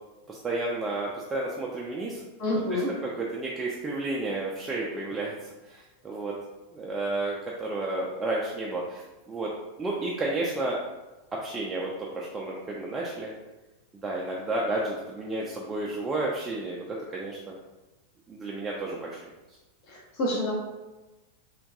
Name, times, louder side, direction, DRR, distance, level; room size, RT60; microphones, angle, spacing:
voice 1, 0.3-2.2 2.7-5.3 5.7-6.3 6.7-9.5 9.8-10.8 11.4-13.3 14.0-16.8 17.1-17.4 18.3-19.2, right 2 dB, 15° right, -4 dB, 0.4 m, -31 dB
voice 2, 2.4-2.9 19.9-20.5, left 1 dB, 45° left, -4 dB, 0.6 m, -28 dB
3.5 x 2.2 x 2.5 m, 1.1 s
figure-of-eight pair, 90°, 0 cm